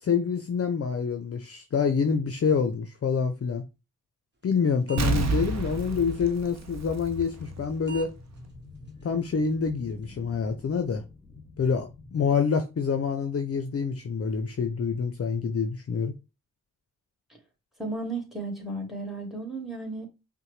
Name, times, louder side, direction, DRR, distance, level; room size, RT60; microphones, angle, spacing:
voice 1, 0.0-3.6 4.4-8.1 9.0-11.0 11.6-16.1, left 6 dB, 45° left, 0.6 m, -27 dB
sound 1, 4.5-4.6 4.9-5.3 5.8-5.9 7.3-7.5 7.9-8.1 8.4-8.5 8.9-9.0 9.4-9.5 9.7-10.2, right 4 dB, 30° right, 1.2 m, -42 dB
Explosion, 5.0-7.6 7.9-8.0, right 4 dB, 50° right, 0.7 m, -29 dB
sound 2, 5.3-12.2, left 2 dB, 15° left, 1.9 m, -44 dB
voice 2, 17.8-20.1, right 2 dB, ahead, 1.9 m, -34 dB
5.4 x 2.2 x 3.1 m
supercardioid pair, 40°, 34 cm